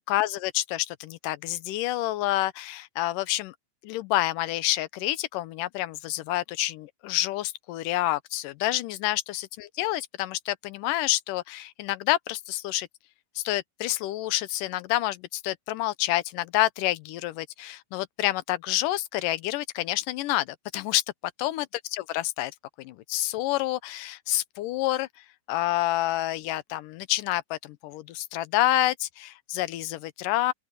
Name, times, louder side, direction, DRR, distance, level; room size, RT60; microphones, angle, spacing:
voice 1, 0.0-3.6 3.8-12.9 13.4-21.0 21.4-22.5 22.8-25.1 25.5-30.5, left 16 dB, 75° left, 2.3 m, -28 dB
open air
omnidirectional pair, 4.3 m